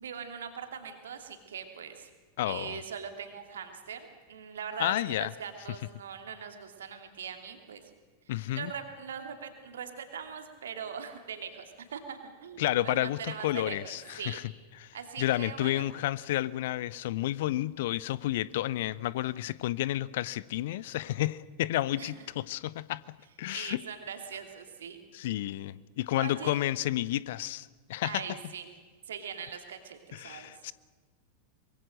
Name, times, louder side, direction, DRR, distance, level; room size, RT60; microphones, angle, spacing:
voice 1, 0.0-2.1 2.4-7.9 8.3-14.4 14.9-15.9 22.0-22.3 23.5-25.0 25.6-25.7 26.2-26.6 28.0-28.7 29.1-30.5, right 7 dB, 65° right, 2.8 m, -41 dB
voice 2, 2.4-2.8 4.8-5.3 8.3-8.7 12.6-14.4 14.8-23.0 23.4-23.8 25.1-28.2 30.1-30.7, left 14 dB, 55° left, 0.6 m, -31 dB
24.0 x 22.5 x 6.4 m
figure-of-eight pair, 90°, 0 cm